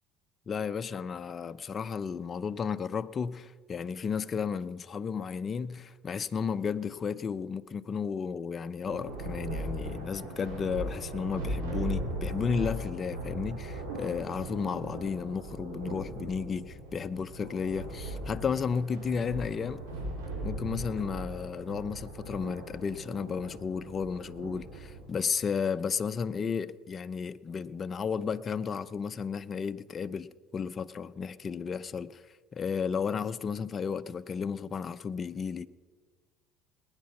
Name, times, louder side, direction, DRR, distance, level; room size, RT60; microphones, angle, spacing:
voice 1, 0.5-19.9 20.4-32.2 32.5-35.7, left 6 dB, 35° left, 0.6 m, -33 dB
Thunder, 8.8-25.1, right 1 dB, 90° right, 5.4 m, -38 dB
19.5 x 9.7 x 5.9 m
supercardioid pair, 100°, 0 cm